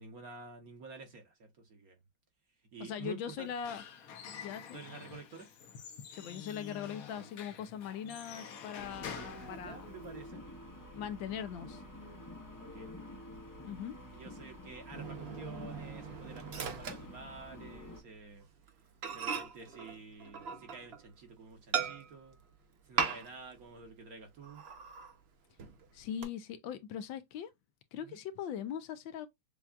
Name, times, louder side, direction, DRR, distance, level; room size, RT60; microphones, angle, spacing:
voice 1, 0.0-2.0 2.7-3.5 4.7-5.5 9.0-10.4 12.6-12.9 14.1-18.5 19.1-22.4 22.8-24.6 28.0-28.2, right 4 dB, 50° right, 1.4 m, -50 dB
voice 2, 2.8-3.8 4.4-4.8 6.1-9.9 10.9-11.8 13.6-14.0 25.9-27.5 27.9-29.3, left 9 dB, 75° left, 1.3 m, -40 dB
Squeak / Wood, 3.4-10.3, left 7 dB, 60° left, 1.0 m, -48 dB
sound 1, 8.8-18.0, left 1 dB, 25° left, 0.4 m, -49 dB
Microwave oven, 14.9-17.8 18.1-18.4 18.7-18.8 19.0-21.1 21.7-22.3 23.0-23.6 23.8-23.9 24.4-25.2 25.6-26.2, right 6 dB, 80° right, 0.5 m, -38 dB
7.0 x 2.3 x 2.4 m
omnidirectional pair, 2.2 m